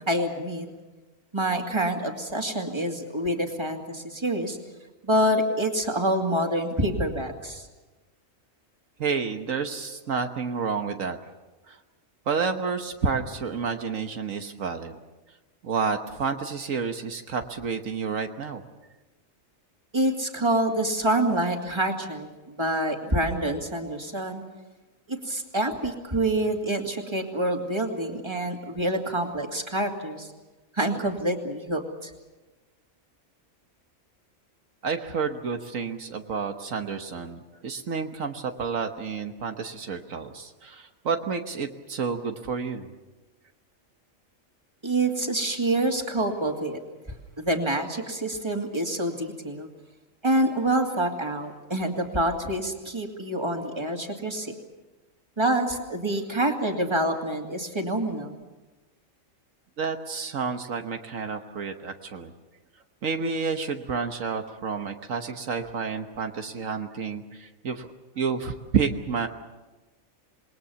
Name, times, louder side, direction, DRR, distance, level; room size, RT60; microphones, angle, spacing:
voice 1, 0.1-0.7 1.3-4.6 5.0-7.7 19.9-24.4 25.1-30.3 30.7-32.1 44.8-46.8 47.4-49.7 50.2-54.5 55.4-58.3, right 1 dB, 20° right, 3 dB, 2.5 m, -27 dB
voice 2, 9.0-11.2 11.7-11.8 12.3-15.0 15.6-18.6 34.8-42.9 59.8-62.3 63.0-67.9 68.2-69.3, right 5 dB, 75° right, 6 dB, 1.6 m, -30 dB
27.5 x 20.5 x 7.0 m, 1.2 s
omnidirectional pair, 1.4 m